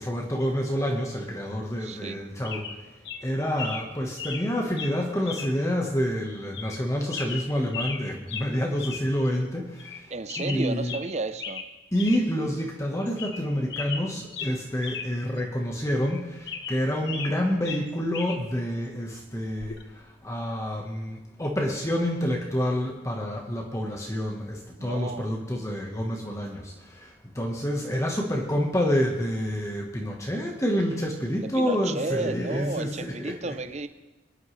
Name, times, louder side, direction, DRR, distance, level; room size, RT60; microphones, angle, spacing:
voice 1, 0.0-2.9 3.2-10.9 11.9-33.5, equal, 15° left, 0 dB, 1.2 m, -28 dB
voice 2, 1.8-2.2 10.1-11.6 24.8-25.3 31.5-33.9, right 3 dB, 35° right, 11 dB, 0.6 m, -32 dB
sound 1, 2.0-2.2 2.4-2.8 3.0-3.2 3.6-3.9 4.2-4.5 4.8-4.9 5.3-5.5 5.9-6.0 6.5-6.8 7.1-8.0 8.3-8.5 8.8-9.0 9.3-9.4 9.8-10.0 10.3-11.1 11.4-11.7 11.9-12.2 12.6-12.7 13.1-13.4 13.7-15.1 15.4-15.5 16.0-17.4 17.6-18.4 19.6-19.8, left 6 dB, 55° left, 1.1 m, -36 dB
23.5 x 11.0 x 3.2 m, 1.1 s
head